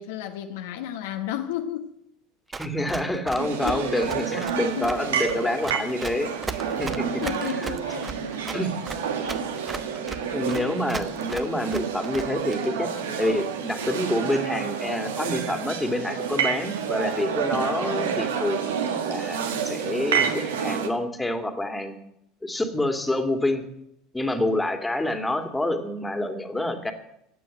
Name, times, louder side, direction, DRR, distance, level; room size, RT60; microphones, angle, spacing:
voice 1, 0.0-1.9 3.3-4.0 4.6-5.0 7.2-8.6 10.1-10.4, left 11 dB, 70° left, 1.2 m, -34 dB
Run, 2.5-12.6, right 4 dB, 20° right, 1.1 m, -36 dB
voice 2, 2.6-7.5 8.5-8.7 10.3-12.9 13.2-21.9 22.4-23.6 24.1-26.9, left 1 dB, 10° left, 2.3 m, -27 dB
sound 1, 3.4-20.9, right 7 dB, 75° right, 1.6 m, -29 dB
15.5 x 9.3 x 7.8 m
figure-of-eight pair, 70°, 0 cm